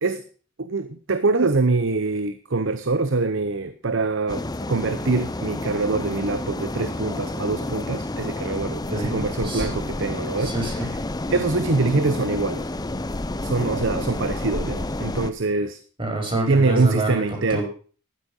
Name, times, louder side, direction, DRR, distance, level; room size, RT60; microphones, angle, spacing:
voice 1, 0.6-10.5 11.3-12.7 13.4-15.8 16.5-17.6, right 3 dB, 60° right, 11 dB, 0.8 m, -24 dB
sound 1, 4.3-15.3, left 2 dB, 20° left, 0.6 m, -30 dB
voice 2, 8.9-9.7 10.4-10.9 16.0-17.6, right 2 dB, 25° right, 2 dB, 4.6 m, -27 dB
12.0 x 9.4 x 6.2 m, 0.40 s
head